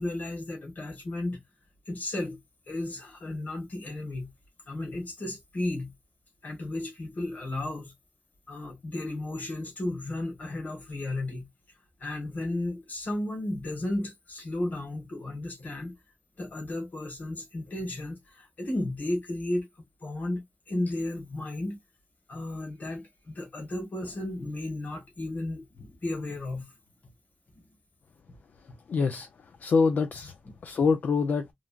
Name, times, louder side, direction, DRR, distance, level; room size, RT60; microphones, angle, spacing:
voice 1, 0.0-1.4 1.9-2.4 2.7-4.3 4.7-5.9 6.4-7.9 8.5-11.5 12.0-15.9 16.4-19.7 20.0-21.8 22.3-26.6, left 1 dB, 70° left, 1.5 m, -34 dB
voice 2, 28.6-31.5, left 5 dB, 85° left, 0.4 m, -26 dB
3.2 x 2.3 x 2.3 m
cardioid pair, 55°, 3 cm